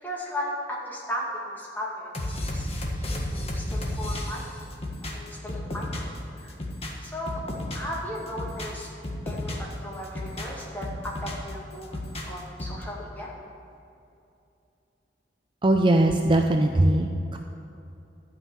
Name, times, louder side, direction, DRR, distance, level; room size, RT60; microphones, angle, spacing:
voice 1, 0.0-2.7 3.0-4.4 5.0-6.6 7.0-7.4 7.7-8.9 9.3-9.5 9.8-12.0 12.3-13.3, equal, 10° left, -4 dB, 2.1 m, -36 dB
sound 1, 2.1-6.2 6.5-8.0 8.3-9.7 10.0-11.5 11.8-12.8, left 1 dB, 35° left, 1.5 m, -32 dB
voice 2, 15.6-17.4, right 1 dB, 30° right, 3 dB, 0.5 m, -21 dB
12.5 x 5.6 x 8.1 m, 2.7 s
head